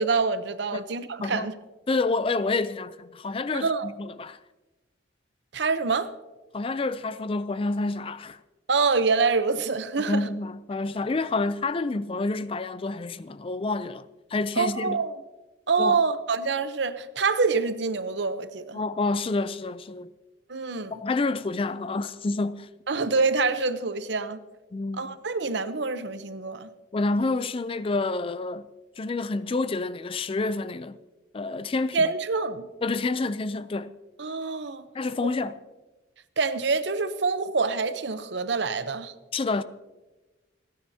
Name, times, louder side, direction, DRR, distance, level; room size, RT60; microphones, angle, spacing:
voice 1, 0.0-1.5 3.6-3.9 5.5-6.1 8.7-10.2 14.6-15.1 15.7-18.8 20.5-20.9 22.9-24.4 24.9-26.7 31.9-32.7 34.2-34.9 36.4-39.1, right 4 dB, 65° right, 0.8 m, -26 dB
voice 2, 1.9-4.4 6.5-8.4 10.1-15.0 15.8-16.0 18.7-20.1 20.9-22.7 24.7-25.1 26.9-28.7 29.0-31.0 31.3-32.1 32.8-33.9 34.9-35.6 39.3-39.6, left 3 dB, 30° left, 0.4 m, -28 dB
28.5 x 10.0 x 2.8 m
head